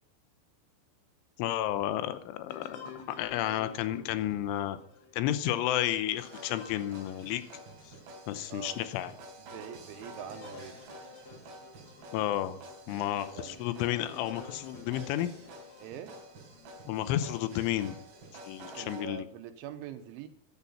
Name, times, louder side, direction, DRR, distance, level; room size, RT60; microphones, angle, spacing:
voice 1, 1.4-4.8 5.1-7.4 7.9-8.0 8.3-9.1 12.1-12.6 12.9-15.3 16.9-18.0 18.5-19.3, left 13 dB, 85° left, 3.3 m, -32 dB
sound 1, 2.5-8.3 8.8-8.9 9.5-16.7 17.3-17.9, left 5 dB, 65° left, 3.7 m, -52 dB
sound 2, 6.2-19.1, right 2 dB, 60° right, 5.1 m, -49 dB
voice 2, 8.5-8.8 9.5-10.8 13.0-13.6 15.8-16.1 18.8-20.3, right 10 dB, 90° right, 3.4 m, -44 dB
14.5 x 10.5 x 5.7 m
omnidirectional pair, 5.4 m